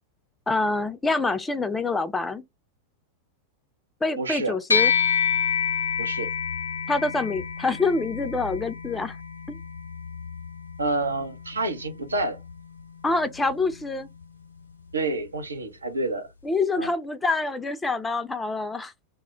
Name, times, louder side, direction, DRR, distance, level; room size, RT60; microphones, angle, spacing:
voice 1, 0.5-2.4 4.0-4.9 6.9-9.2 9.5-9.6 13.0-14.1 16.4-18.9, left 3 dB, 10° left, 0.4 m, -26 dB
voice 2, 4.2-4.6 6.0-6.3 10.8-12.4 14.9-16.3 16.8-16.9, right 2 dB, 75° right, 0.5 m, -28 dB
sound 1, 4.7-14.3, left 7 dB, 75° left, 0.4 m, -29 dB
2.1 x 2.0 x 3.7 m
figure-of-eight pair, 90°, 0 cm